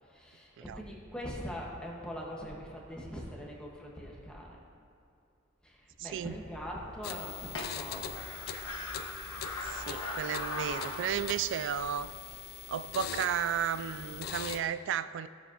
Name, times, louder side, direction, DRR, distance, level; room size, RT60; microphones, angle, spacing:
voice 1, 0.0-4.6 5.6-8.1, equal, 5° left, -3 dB, 1.3 m, -42 dB
sound 1, 6.0-12.3, left 2 dB, 90° left, 1.3 m, -41 dB
voice 2, 6.0-6.4 9.6-12.1 12.7-15.3, right 8 dB, 65° right, 13 dB, 0.3 m, -33 dB
sound 2, 7.0-14.6, left 8 dB, 50° left, 0.4 m, -42 dB
15.5 x 7.0 x 2.8 m, 2.4 s
head